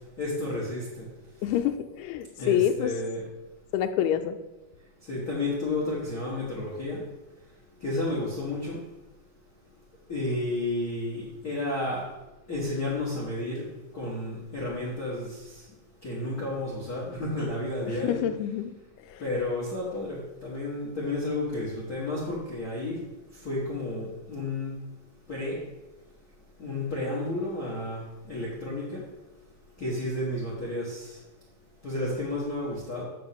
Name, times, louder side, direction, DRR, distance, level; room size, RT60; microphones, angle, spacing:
voice 1, 0.2-1.1 1.6-1.7 2.4-3.2 5.0-7.0 7.8-8.8 10.1-12.1 12.5-13.7 13.9-15.6 16.0-18.2 19.2-23.0 23.3-24.8 25.3-25.6 26.6-29.0 29.8-31.2 31.8-33.0, left 2 dB, 60° left, -5 dB, 0.9 m, -31 dB
voice 2, 1.4-3.0 3.7-4.4 17.9-18.7 19.1-19.2, left 10 dB, 90° left, 7 dB, 2.6 m, -27 dB
8.8 x 3.6 x 6.9 m, 1.1 s
omnidirectional pair, 4.5 m